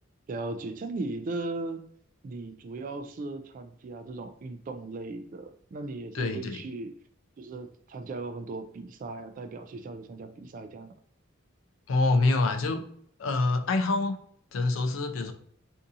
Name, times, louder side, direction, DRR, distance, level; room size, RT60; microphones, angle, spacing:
voice 1, 0.3-1.9 2.2-7.0 7.4-10.9, right 2 dB, 40° right, 7 dB, 0.3 m, -37 dB
voice 2, 6.1-6.6 11.9-12.9 13.2-14.2 14.5-15.3, left 3 dB, 75° left, 8 dB, 0.4 m, -26 dB
2.7 x 2.6 x 3.5 m, 0.64 s
head